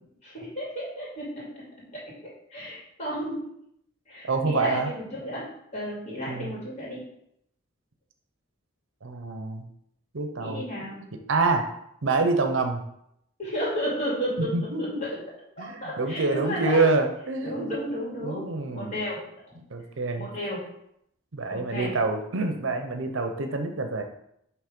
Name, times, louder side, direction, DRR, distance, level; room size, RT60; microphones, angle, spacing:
voice 1, 0.2-3.5 4.1-7.0 10.4-11.0 13.4-14.5 14.8-15.2 15.6-16.8 17.4-19.6 20.2-20.7 21.5-21.9, equal, 35° left, -6 dB, 2.5 m, -33 dB
voice 2, 4.2-4.9 6.3-6.5 9.0-9.6 10.1-10.6 11.3-11.7 12.0-12.8 14.5-14.8 15.6-17.7 18.2-19.0 19.6-20.3 21.3-24.0, right 3 dB, 70° right, 6 dB, 0.7 m, -26 dB
6.2 x 3.2 x 5.1 m, 0.75 s
head